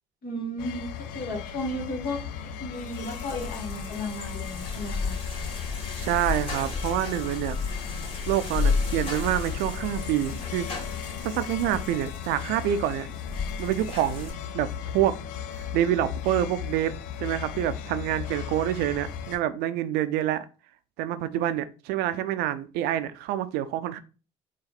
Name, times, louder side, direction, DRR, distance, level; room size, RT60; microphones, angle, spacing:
voice 1, 0.2-2.2 2.6-5.1, left 1 dB, 65° left, 1.6 m, -34 dB
sound 1, 0.6-19.4, left 9 dB, 85° left, 0.5 m, -37 dB
sound 2, 2.8-14.3, left 4 dB, 35° left, 2.1 m, -33 dB
voice 2, 5.9-7.6 8.3-10.7 11.2-13.1 13.6-15.1 15.7-16.9 17.2-20.5 21.0-24.0, right 12 dB, 75° right, 0.5 m, -27 dB
4.2 x 2.4 x 4.0 m
supercardioid pair, 70°, 17 cm